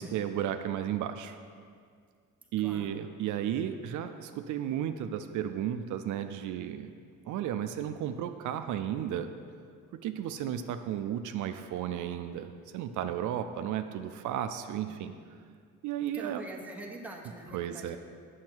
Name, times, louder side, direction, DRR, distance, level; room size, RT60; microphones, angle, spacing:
voice 1, 0.0-1.4 2.5-6.9 7.3-9.3 9.9-15.1 15.8-16.4 17.5-18.0, right 10 dB, 75° right, 8 dB, 0.5 m, -33 dB
voice 2, 2.6-3.0 15.0-15.2 16.1-18.0, right 1 dB, 5° right, -1 dB, 1.1 m, -44 dB
7.7 x 6.3 x 4.5 m, 2.1 s
cardioid pair, 90°, 30 cm